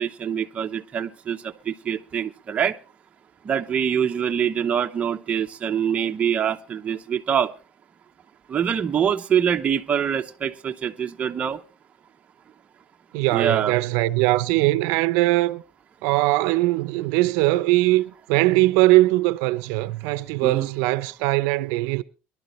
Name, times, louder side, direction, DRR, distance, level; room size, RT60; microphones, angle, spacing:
voice 1, 0.0-2.8 3.4-7.5 8.5-11.6 13.3-13.7 20.4-20.7, right 8 dB, 25° right, 0.8 m, -24 dB
voice 2, 13.1-15.6 16.0-22.0, right 19 dB, 75° right, 0.6 m, -21 dB
23.0 x 11.5 x 3.1 m
cardioid pair, 150°, 5 cm